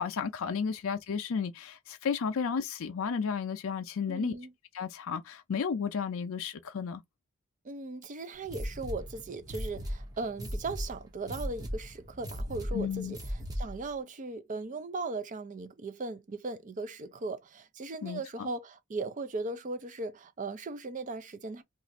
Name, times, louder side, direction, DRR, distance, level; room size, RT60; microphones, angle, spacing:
voice 1, 0.0-4.3 4.7-7.0 12.7-13.2 18.0-18.5, left 6 dB, 65° left, 0.4 m, -33 dB
voice 2, 4.1-4.5 7.6-13.2 13.5-21.6, right 3 dB, 35° right, 0.4 m, -38 dB
sound 1, 8.4-13.9, equal, 15° right, 0.8 m, -38 dB
2.5 x 2.4 x 4.0 m
head